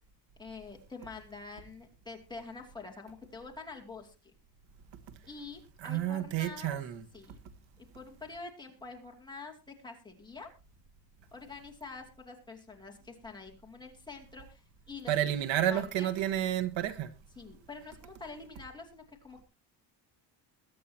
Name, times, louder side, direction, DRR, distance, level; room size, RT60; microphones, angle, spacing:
voice 1, 0.4-4.1 5.3-6.8 7.1-7.4 7.8-10.5 11.3-14.6 14.9-15.1 15.7-16.1 17.4-19.4, left 4 dB, 10° left, 2.7 m, -46 dB
voice 2, 5.8-7.0 15.1-17.1, right 11 dB, 90° right, 1.6 m, -30 dB
22.0 x 8.6 x 2.9 m
cardioid pair, 165°, 44 cm